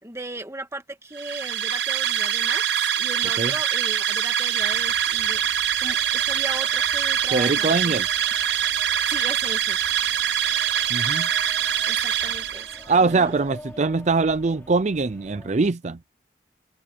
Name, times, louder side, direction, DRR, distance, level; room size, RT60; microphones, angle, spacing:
voice 1, 0.0-8.0 9.1-9.8 11.9-13.3, right 2 dB, 15° right, 1.9 m, -37 dB
sound 1, 1.1-13.0, right 9 dB, 70° right, 1.2 m, -24 dB
sound 2, 4.6-15.7, left 1 dB, 10° left, 3.3 m, -47 dB
voice 2, 7.3-8.1 10.9-11.3 12.9-16.0, right 3 dB, 40° right, 0.5 m, -22 dB
head